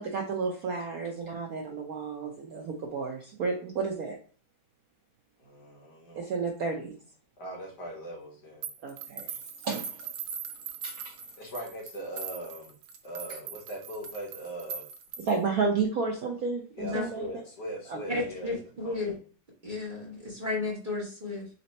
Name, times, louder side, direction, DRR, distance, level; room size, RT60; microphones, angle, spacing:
voice 1, 0.0-4.2 6.2-7.0 8.8-9.3 9.6-10.0 10.8-11.1 15.2-17.2 17.9-18.2, right 4 dB, 65° right, 0 dB, 0.9 m, -31 dB
voice 2, 5.4-6.3 7.4-8.7 11.4-12.7 13.0-14.8 16.8-18.5 18.8-19.1, right 1 dB, 60° left, -2 dB, 1.8 m, -40 dB
sound 1, 8.6-15.5, right 7 dB, 85° right, 1.4 m, -40 dB
voice 3, 16.8-17.3 18.1-19.1 19.6-21.5, left 3 dB, 30° right, -4 dB, 1.2 m, -33 dB
4.2 x 2.8 x 4.1 m, 0.40 s
omnidirectional pair, 2.2 m